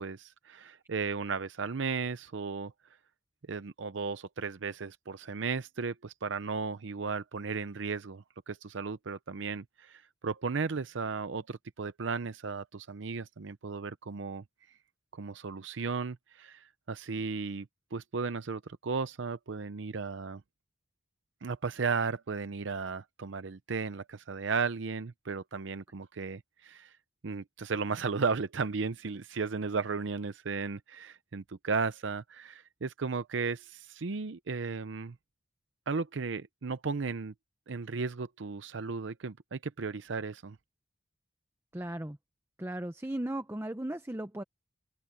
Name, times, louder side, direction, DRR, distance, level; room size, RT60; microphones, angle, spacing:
voice 1, 0.0-2.7 3.5-14.4 15.1-20.4 21.4-26.9 27.2-35.2 35.9-37.3 37.7-40.6, right 4 dB, 80° right, 0.6 m, -35 dB
voice 2, 41.7-42.2 42.6-44.4, right 1 dB, 15° right, 0.7 m, -36 dB
open air
head